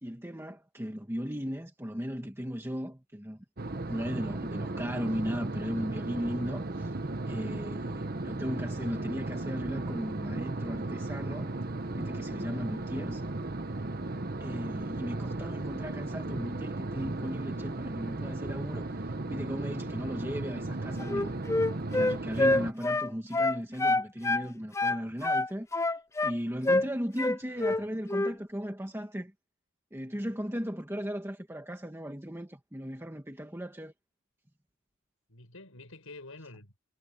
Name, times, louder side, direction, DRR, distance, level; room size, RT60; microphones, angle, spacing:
voice 1, 0.0-3.4 3.9-7.0 7.3-11.5 11.9-13.2 14.4-21.6 21.9-25.9 26.2-29.3 29.9-33.9, equal, 10° right, 1.6 m, -37 dB
sound 1, 3.6-22.7, right 2 dB, 45° right, 1.2 m, -35 dB
Wind instrument woodwind instrument, 21.0-24.5 24.7-26.4 26.7-26.9 27.2-27.8 28.1-28.3, left 2 dB, 15° left, 0.4 m, -27 dB
voice 2, 27.5-27.8 35.3-36.8, left 2 dB, 75° left, 6.0 m, -48 dB
head